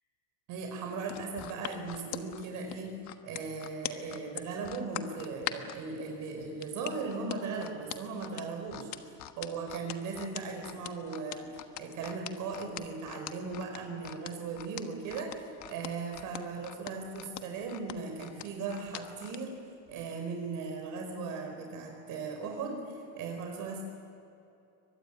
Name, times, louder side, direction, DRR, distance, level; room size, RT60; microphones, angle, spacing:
voice 1, 0.5-3.0 3.2-8.9 9.4-19.6 19.9-23.8, right 4 dB, 50° right, 2 dB, 4.6 m, -38 dB
sound 1, 1.0-5.8 6.6-19.4 19.9-20.0, left 14 dB, 45° left, 1.4 m, -41 dB
23.5 x 20.0 x 9.9 m, 2.7 s
supercardioid pair, 140°, 41 cm